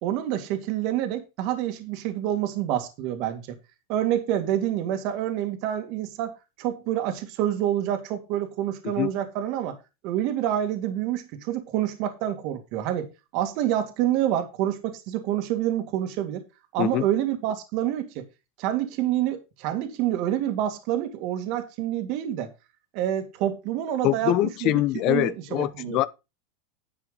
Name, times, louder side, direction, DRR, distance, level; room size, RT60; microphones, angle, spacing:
voice 1, 0.0-3.6 3.9-9.8 10.0-16.4 16.7-18.2 18.6-22.5 22.9-24.3 24.6-26.0, right 12 dB, 55° right, 2.3 m, -27 dB
voice 2, 24.0-26.1, left 15 dB, 50° left, 0.8 m, -24 dB
10.0 x 7.3 x 3.9 m
supercardioid pair, 125°, 0 cm